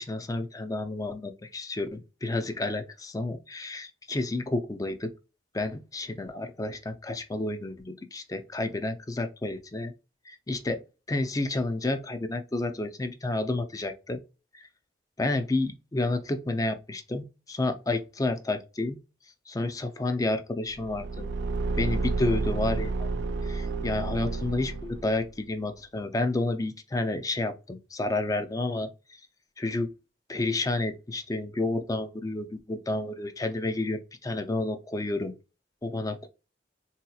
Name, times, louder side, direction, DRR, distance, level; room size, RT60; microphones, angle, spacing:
voice 1, 0.0-5.1 5.5-9.9 10.3-10.8 11.1-14.2 14.5-14.7 15.2-19.0 19.5-21.3 21.8-23.1 23.4-29.2 29.6-29.9 30.3-35.3 35.8-36.3, left 2 dB, 20° left, 0.4 m, -30 dB
Car / Engine, 20.7-25.3, right 3 dB, 75° right, 0.4 m, -30 dB
3.8 x 2.8 x 2.3 m
head